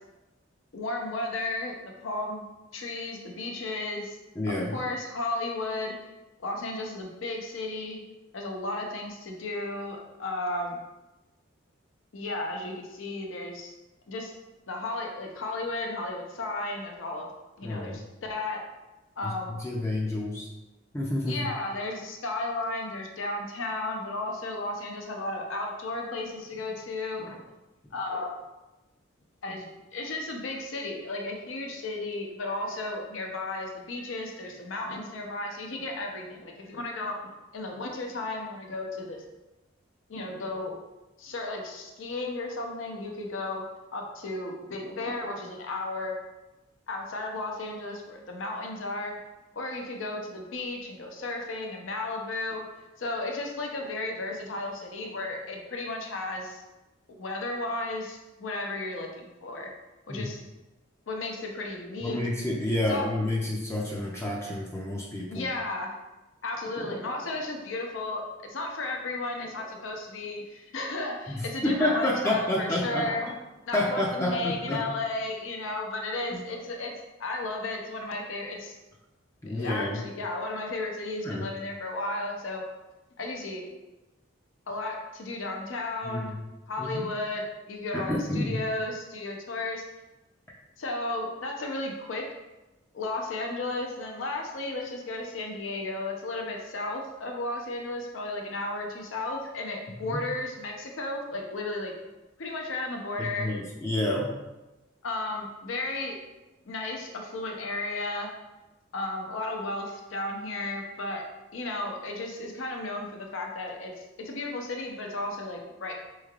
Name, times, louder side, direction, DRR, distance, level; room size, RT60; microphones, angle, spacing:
voice 1, 0.7-2.4 2.7-4.2 4.5-6.0 6.4-8.0 8.3-10.8 12.1-13.7 14.1-14.3 14.7-17.3 17.6-18.0 18.3-18.6 19.2-19.6 21.2-27.4 27.9-28.3 29.4-39.3 40.1-40.7 41.2-43.6 43.9-46.2 46.9-49.2 49.5-52.6 53.0-56.6 57.2-59.7 60.1-60.4 61.1-62.2 62.9-63.1 65.3-66.0 66.4-73.3 73.7-76.9 77.2-78.8 79.5-82.6 83.2-83.7 84.7-86.3 86.7-89.8 90.8-92.3 92.9-101.9 102.4-103.5 105.0-106.2 106.7-108.3 108.9-111.2 111.5-115.9, left 2 dB, 75° left, 2 dB, 0.6 m, -34 dB
voice 2, 4.4-4.7 17.6-18.0 19.2-20.5 20.9-21.5 60.1-60.3 62.0-65.5 71.3-73.1 73.7-74.8 76.3-76.4 79.4-80.0 81.2-81.5 86.0-86.4 86.8-87.1 87.9-88.6 100.0-100.2 103.2-104.3, left 1 dB, 15° left, -3 dB, 0.4 m, -29 dB
4.4 x 3.2 x 2.3 m, 1.0 s
head